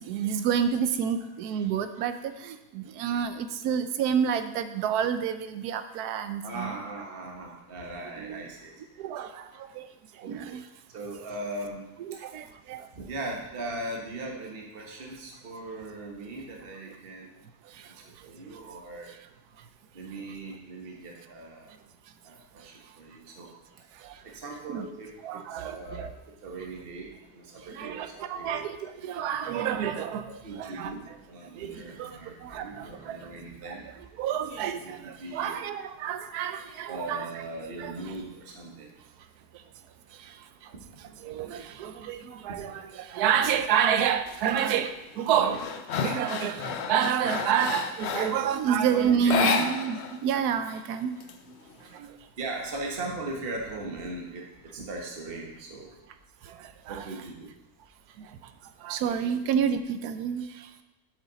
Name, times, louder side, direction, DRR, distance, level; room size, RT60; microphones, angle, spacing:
voice 1, 0.0-6.7 8.2-8.4 9.0-9.9 10.3-10.6 12.1-12.9 24.0-24.1 24.7-24.9 25.2-26.1 27.7-30.3 30.6-30.9 31.6-33.2 34.2-37.3 37.8-37.9 40.2-40.3 41.2-45.6 46.0-51.1 51.9-52.1 56.5-57.0 58.2-58.3 58.8-60.7, right 8 dB, 85° right, 10 dB, 1.1 m, -29 dB
voice 2, 6.4-8.7 10.2-10.6 10.9-11.8 12.9-17.3 17.8-17.9 18.2-19.1 19.9-21.7 22.2-23.5 24.2-26.1 26.4-28.6 30.3-33.9 34.6-35.6 36.9-38.9 40.7-41.7 42.5-42.6 45.3-45.6 49.0-49.5 52.4-55.9 56.9-57.5, right 2 dB, 40° right, 0 dB, 1.4 m, -39 dB
sound 1, 44.3-44.6 45.0-48.5 49.2-50.2 50.4-50.5 50.9-51.9, left 6 dB, 60° left, 0.7 m, -30 dB
8.2 x 6.3 x 4.0 m, 0.94 s
omnidirectional pair, 1.6 m